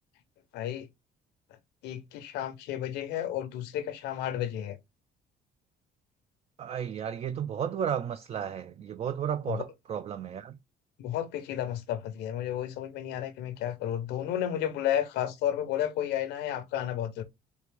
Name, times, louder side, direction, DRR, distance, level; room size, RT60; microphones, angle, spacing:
voice 1, 0.5-0.9 1.8-4.8 9.4-9.6 11.0-17.2, left 11 dB, 85° left, 0.8 m, -32 dB
voice 2, 6.6-10.6, right 8 dB, 35° right, 0.4 m, -33 dB
4.5 x 2.5 x 3.5 m
cardioid pair, 110°, 17 cm